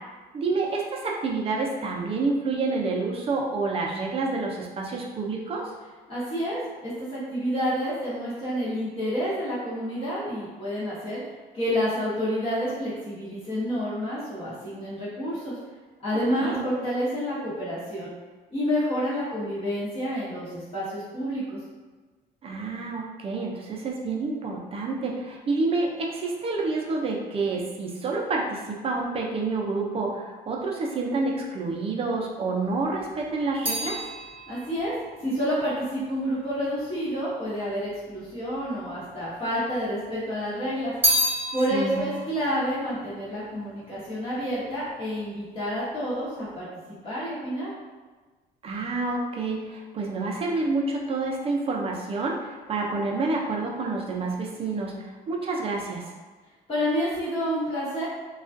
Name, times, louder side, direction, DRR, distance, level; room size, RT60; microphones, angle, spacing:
voice 1, 0.3-5.6 16.4-16.6 22.4-34.0 41.7-42.0 48.6-54.9 55.3-56.0, right 3 dB, 35° right, -1 dB, 0.4 m, -28 dB
voice 2, 6.1-11.2 11.5-15.6 16.0-18.1 18.5-21.6 34.5-34.9 35.2-40.9 41.5-47.7 56.7-58.0, equal, 35° left, -10 dB, 1.0 m, -29 dB
sound 1, 32.7-37.1 37.9-38.7 39.0-40.1 40.4-44.0 44.2-44.8, equal, 10° right, 1.0 m, -31 dB
2.3 x 2.2 x 2.5 m, 1.3 s
cardioid pair, 110°, 17 cm